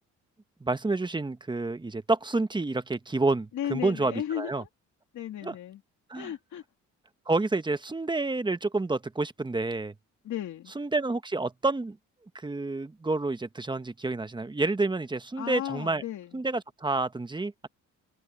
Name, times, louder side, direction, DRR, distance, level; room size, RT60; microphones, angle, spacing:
voice 1, 0.6-4.6 5.4-5.5 6.1-6.3 7.3-9.9 10.7-12.0 12.3-16.0 16.3-17.7, right 3 dB, 15° right, 1.2 m, -29 dB
voice 2, 3.5-4.7 5.1-5.8 6.1-6.6 10.2-10.7 15.4-16.4, left 11 dB, 70° left, 2.9 m, -35 dB
open air
cardioid pair, 90°, 30 cm